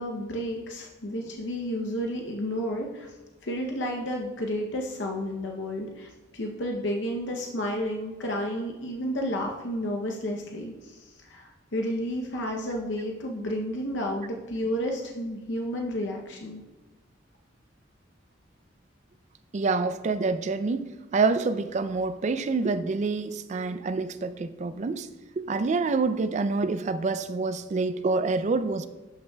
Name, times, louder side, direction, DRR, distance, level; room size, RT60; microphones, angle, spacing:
voice 1, 0.0-3.2 3.4-16.6, equal, 70° left, 1 dB, 0.7 m, -31 dB
voice 2, 19.5-25.1 25.4-28.9, right 4 dB, 40° right, 12 dB, 0.4 m, -27 dB
11.5 x 5.5 x 2.3 m, 1.1 s
head